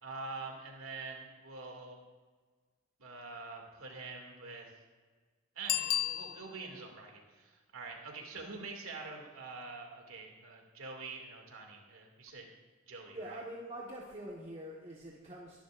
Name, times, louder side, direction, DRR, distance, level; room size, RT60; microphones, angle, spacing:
voice 1, 0.0-2.0 3.0-4.7 5.6-12.5 12.9-13.4, right 3 dB, 90° right, 1 dB, 2.4 m, -45 dB
Bicycle bell, 5.6-6.8 12.3-12.4, left 11 dB, 45° left, 0.3 m, -33 dB
voice 2, 13.1-15.6, right 1 dB, 30° right, -3 dB, 1.4 m, -45 dB
22.5 x 11.5 x 2.5 m, 1.4 s
head